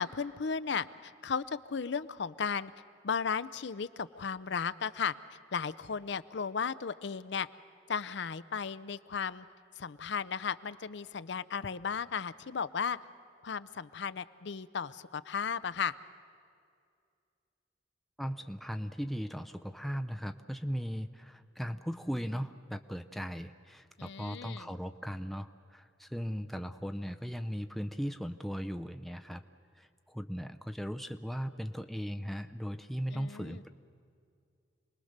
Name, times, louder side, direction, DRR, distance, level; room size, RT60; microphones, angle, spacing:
voice 1, 0.0-2.7 3.0-7.5 7.9-9.5 9.8-13.0 13.4-15.9 24.0-24.7 33.1-33.6, left 6 dB, 65° left, 15 dB, 0.6 m, -35 dB
voice 2, 18.2-29.4 29.8-33.7, equal, ahead, 7 dB, 0.5 m, -38 dB
28.0 x 20.5 x 6.6 m, 2.3 s
head